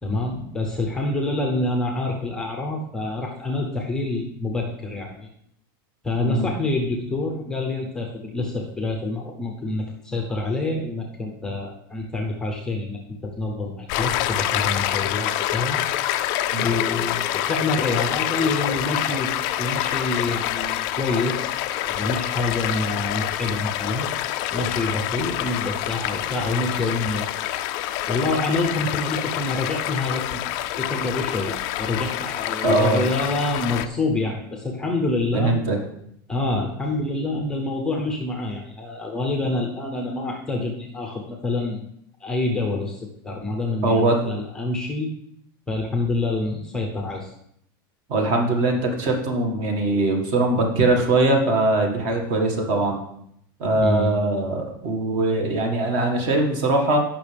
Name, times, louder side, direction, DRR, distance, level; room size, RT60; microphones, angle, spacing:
voice 1, 0.0-5.3 6.0-15.8 16.6-19.3 19.6-21.6 21.9-24.1 24.5-27.3 28.1-30.4 30.8-35.5 36.3-41.9 42.2-45.1 45.7-47.3 53.7-54.1, left 2 dB, 5° left, 1 dB, 0.7 m, -27 dB
Stream, 13.9-33.9, left 13 dB, 35° left, 0.4 m, -27 dB
voice 2, 32.6-33.0 35.3-35.8 43.8-44.2 48.1-53.0 53.6-57.0, right 2 dB, 40° right, 3 dB, 1.8 m, -21 dB
16.5 x 5.8 x 3.5 m, 0.72 s
supercardioid pair, 175°, 12 cm